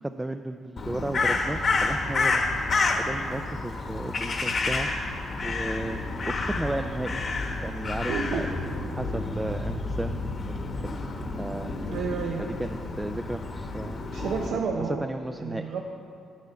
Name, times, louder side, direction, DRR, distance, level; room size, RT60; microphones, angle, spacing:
voice 1, 0.0-7.2 7.6-8.5 8.9-10.6 10.8-11.0 11.4-11.8 12.4-14.0 14.5-14.6 14.9-15.7, right 1 dB, 10° right, 7 dB, 0.3 m, -34 dB
Crow, 0.8-14.5, left 3 dB, 45° left, 1.0 m, -29 dB
voice 2, 8.1-8.5 11.9-12.4 14.1-15.0 15.4-15.8, right 6 dB, 75° right, 0 dB, 0.7 m, -30 dB
8.4 x 8.1 x 5.7 m, 2.4 s
cardioid pair, 90°, 0 cm